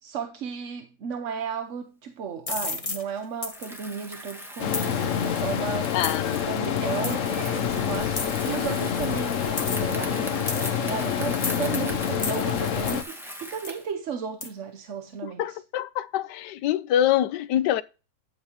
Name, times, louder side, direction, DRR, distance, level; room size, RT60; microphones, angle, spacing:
voice 1, 0.0-5.9 6.3-15.6, right 6 dB, 55° right, 1.0 m, -34 dB
sound 1, 2.5-3.0 3.4-3.7 4.7-4.9 6.0-6.3 7.0-7.2 8.2-8.5 9.6-10.0 10.5-10.9 11.4-11.8 12.2-12.4 12.9-13.0 13.6-13.8 14.4-14.5, left 3 dB, 25° left, 1.1 m, -31 dB
Bicycle, 3.4-13.9, equal, ahead, 1.8 m, -40 dB
sound 2, 4.6-13.0, left 8 dB, 55° left, 1.0 m, -27 dB
voice 2, 5.9-6.5 15.2-17.8, left 11 dB, 80° left, 1.3 m, -25 dB
10.0 x 8.6 x 3.0 m
omnidirectional pair, 1.8 m